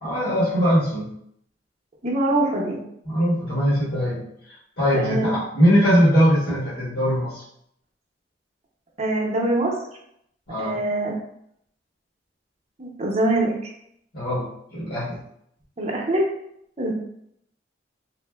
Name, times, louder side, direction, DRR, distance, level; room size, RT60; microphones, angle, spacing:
voice 1, 0.0-1.1 3.0-4.3 4.8-7.4 10.5-10.8 14.1-15.2, equal, 65° left, -10 dB, 1.0 m, -21 dB
voice 2, 2.0-2.8 4.9-5.4 9.0-9.7 10.6-11.2 12.8-13.5 15.8-16.3 16.8-16.9, right 1 dB, 35° right, -2 dB, 0.6 m, -23 dB
3.3 x 2.0 x 2.2 m, 0.73 s
head